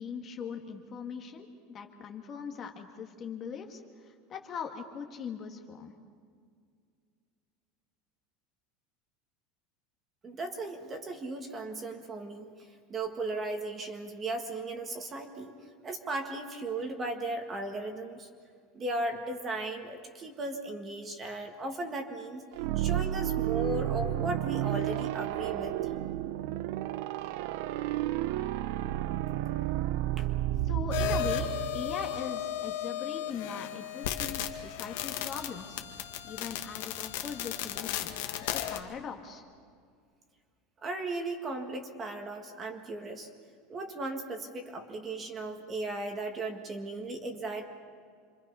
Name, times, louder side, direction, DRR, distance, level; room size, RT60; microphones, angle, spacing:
voice 1, 0.0-5.9 30.6-35.8 36.2-38.2 38.5-39.4, left 6 dB, 25° left, 4 dB, 1.6 m, -40 dB
voice 2, 10.2-15.5 15.8-18.3 18.7-22.4 22.7-25.7 30.2-30.3 40.8-43.3 43.7-47.7, right 2 dB, 20° right, 5 dB, 1.7 m, -36 dB
sound 1, 22.5-32.3, right 14 dB, 60° right, 0.7 m, -31 dB
sound 2, 30.9-38.8, left 11 dB, 75° left, 1.7 m, -35 dB
28.0 x 24.5 x 5.5 m, 2.1 s
supercardioid pair, 170°, 0 cm